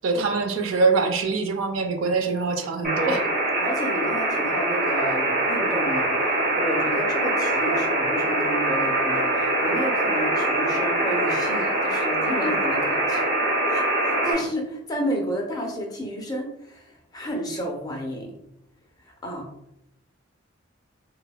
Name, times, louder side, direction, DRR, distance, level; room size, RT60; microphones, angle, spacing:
voice 1, 0.0-3.2, right 4 dB, 85° right, 5 dB, 0.4 m, -23 dB
sound 1, 2.8-14.3, right 1 dB, 40° right, 0.8 m, -23 dB
voice 2, 3.6-13.2 13.7-18.3 19.1-19.5, equal, 20° left, 1 dB, 0.4 m, -31 dB
3.3 x 2.0 x 2.3 m, 0.81 s
head